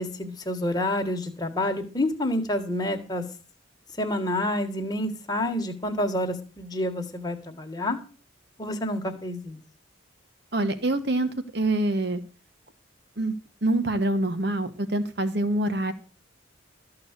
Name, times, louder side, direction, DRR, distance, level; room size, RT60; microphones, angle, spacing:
voice 1, 0.0-3.2 4.0-8.0 8.6-9.6, left 1 dB, 20° left, 4 dB, 1.5 m, -28 dB
voice 2, 10.5-12.2 13.2-13.3 13.6-15.9, right 1 dB, 55° right, 10 dB, 1.4 m, -25 dB
13.5 x 4.8 x 8.1 m, 0.36 s
head